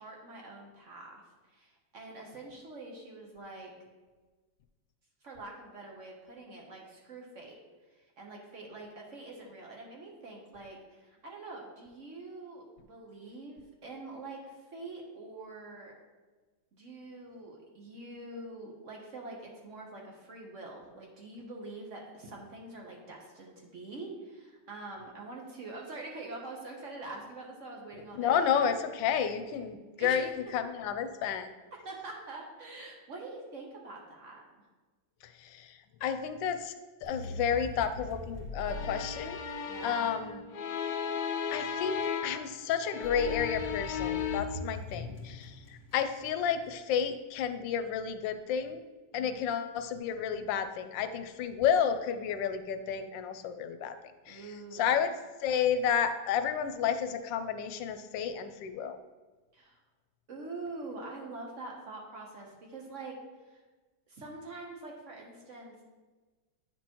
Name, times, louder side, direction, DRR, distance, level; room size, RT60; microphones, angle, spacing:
voice 1, 0.0-3.7 5.2-7.6 7.9-15.9 16.7-28.6 29.5-29.6 30.0-30.3 31.8-34.4 39.7-40.2 49.2-49.4 54.3-54.9 59.5-59.8 60.3-63.6 64.1-65.8, right 2 dB, 50° right, -1 dB, 1.1 m, -45 dB
voice 2, 28.2-31.5 35.4-36.7 37.0-39.4 39.8-40.4 41.5-48.8 49.1-53.9 54.3-54.4 54.7-55.1 55.4-59.0, left 8 dB, 85° left, 9 dB, 1.3 m, -31 dB
sound 1, 37.0-40.0 43.0-46.5, left 1 dB, 10° left, 0.8 m, -42 dB
sound 2, 38.7-42.5 42.8-44.4, left 7 dB, 70° left, 1.0 m, -35 dB
8.6 x 6.1 x 2.9 m, 1.3 s
omnidirectional pair, 2.0 m